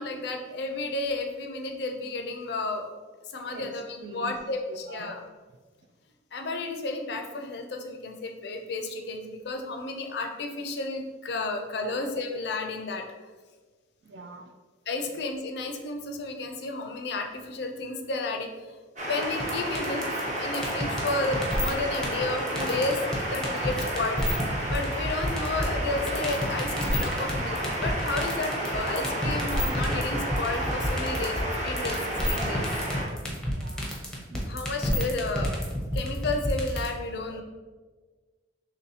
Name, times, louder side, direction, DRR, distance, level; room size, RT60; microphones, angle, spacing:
voice 1, 0.0-2.9 3.2-5.2 6.3-13.0 14.9-24.2 24.7-32.6 34.5-35.5 35.9-37.4, left 3 dB, 60° left, 4 dB, 0.4 m, -32 dB
voice 2, 4.0-4.4 4.7-5.2 11.8-12.2 14.0-14.5 33.5-34.4, right 3 dB, 65° right, 6 dB, 0.4 m, -43 dB
sound 1, 19.0-33.0, right 1 dB, 40° right, 0.8 m, -31 dB
sound 2, 19.2-36.9, left 1 dB, 5° left, 0.6 m, -29 dB
3.0 x 2.7 x 4.0 m, 1.4 s
head